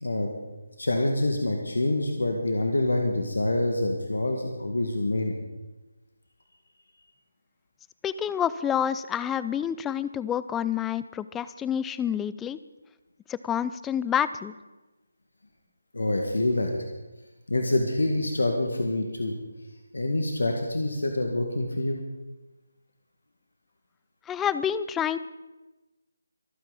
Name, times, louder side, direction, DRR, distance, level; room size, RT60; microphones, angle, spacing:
voice 1, 0.0-0.3 0.8-5.4 15.9-16.7 17.5-19.4 19.9-22.0, left 2 dB, 75° left, 2 dB, 2.1 m, -26 dB
voice 2, 8.0-12.6 13.3-14.5 24.3-25.2, left 9 dB, 10° left, 15 dB, 0.4 m, -28 dB
25.0 x 9.4 x 4.2 m, 1.1 s
figure-of-eight pair, 155°, 0 cm